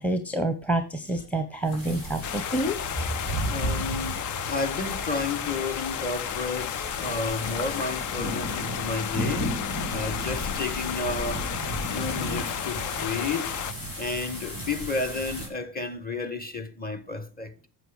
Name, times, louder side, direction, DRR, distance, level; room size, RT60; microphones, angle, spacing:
voice 1, 0.0-2.8, right 1 dB, 5° left, 1.1 m, -27 dB
sound 1, 1.6-15.5, right 1 dB, 80° left, 4.6 m, -34 dB
sound 2, 2.2-13.7, left 10 dB, 40° left, 0.6 m, -33 dB
voice 2, 3.5-9.6 9.9-11.5 11.9-13.5 14.0-17.7, left 3 dB, 20° left, 1.4 m, -32 dB
9.1 x 7.2 x 5.0 m
hypercardioid pair, 75°, 49 cm